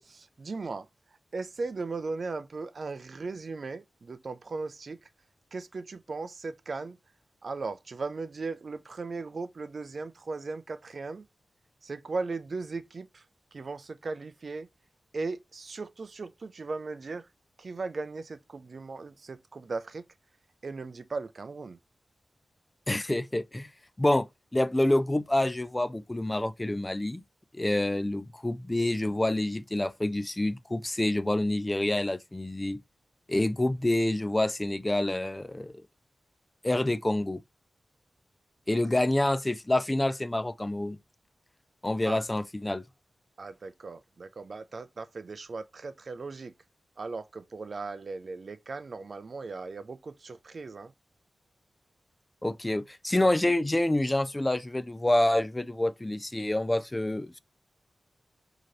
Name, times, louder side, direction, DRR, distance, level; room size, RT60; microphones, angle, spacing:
voice 1, 0.4-5.1 5.5-7.0 7.4-11.3 11.8-13.3 13.5-14.7 15.1-17.3 17.6-20.1 20.6-21.8 38.9-39.0 42.0-42.2 43.4-46.5 47.0-50.9, right 3 dB, 55° right, 0.4 m, -37 dB
voice 2, 22.9-23.7 24.0-27.2 27.5-32.8 33.3-35.7 36.6-37.4 38.7-41.0 41.8-42.8 52.4-57.4, left 1 dB, 15° left, 0.4 m, -27 dB
4.8 x 2.9 x 3.0 m
wide cardioid pair, 95°, 0 cm